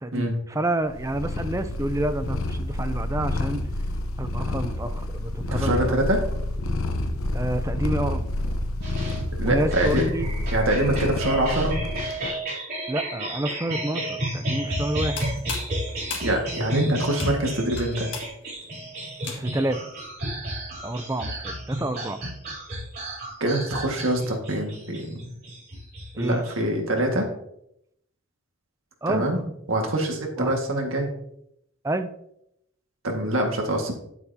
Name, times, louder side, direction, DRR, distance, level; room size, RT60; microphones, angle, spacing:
voice 1, 0.0-3.6 4.2-5.9 7.3-8.2 9.4-10.3 12.9-15.3 19.3-19.9 20.8-22.2 26.1-26.4 29.0-29.3 30.4-30.6 31.8-32.1, right 1 dB, 15° right, 10 dB, 0.5 m, -28 dB
Purr, 0.9-12.2, left 1 dB, 85° left, 1.0 m, -29 dB
voice 2, 5.4-6.2 9.4-10.0 10.5-11.8 16.2-18.1 23.4-25.3 26.2-27.3 29.1-29.4 29.7-31.1 33.0-33.9, right 1 dB, 75° right, 2 dB, 1.9 m, -24 dB
sound 1, 8.8-26.6, right 1 dB, 50° right, 3.3 m, -32 dB
sound 2, 14.9-19.7, left 5 dB, 55° left, 2.2 m, -38 dB
10.0 x 8.0 x 2.9 m, 0.76 s
head